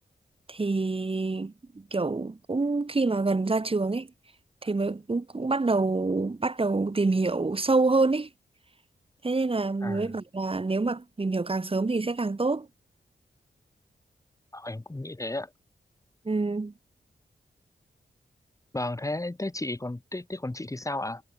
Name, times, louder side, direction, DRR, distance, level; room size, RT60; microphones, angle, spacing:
voice 1, 0.5-4.1 4.6-8.3 9.2-12.7 16.3-16.7, right 3 dB, 30° right, 3.8 m, -26 dB
voice 2, 9.8-10.1 14.5-15.5 18.7-21.2, left 2 dB, 20° left, 2.8 m, -33 dB
wide cardioid pair, 110°, 18 cm